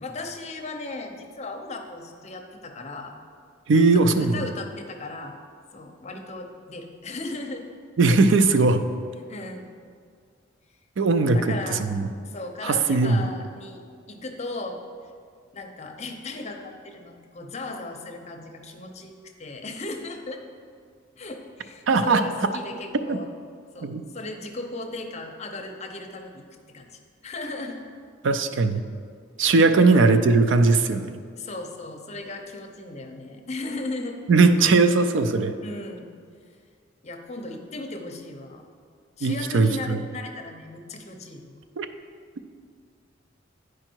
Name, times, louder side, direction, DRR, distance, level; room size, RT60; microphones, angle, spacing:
voice 1, 0.0-3.2 4.2-5.4 5.7-7.7 9.2-9.7 11.2-11.8 12.2-14.8 15.5-20.4 21.1-23.3 23.7-27.8 29.4-29.7 31.4-34.2 35.6-36.1 37.0-38.6 39.2-41.6, left 2 dB, 35° left, 3 dB, 0.7 m, -36 dB
voice 2, 3.7-4.4 8.0-8.8 11.0-12.1 12.6-13.3 21.9-22.2 23.1-23.2 23.8-24.0 28.2-28.8 29.4-31.2 34.3-35.5 39.2-40.0 41.8-41.9, right 3 dB, 70° right, 9 dB, 0.4 m, -19 dB
9.9 x 4.9 x 4.5 m, 2.1 s
head